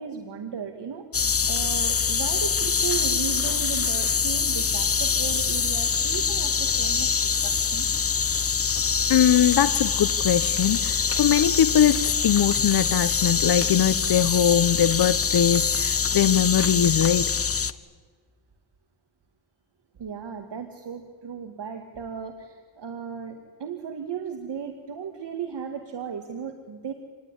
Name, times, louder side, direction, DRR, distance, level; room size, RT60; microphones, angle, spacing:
voice 1, 0.0-7.9 20.0-26.9, right 7 dB, 60° right, 5 dB, 2.2 m, -36 dB
sound 1, 1.1-17.7, left 6 dB, 30° left, 1.0 m, -24 dB
voice 2, 9.1-17.3, left 9 dB, 55° left, 13 dB, 0.9 m, -21 dB
27.5 x 20.0 x 9.9 m, 1.5 s
cardioid pair, 105°, 46 cm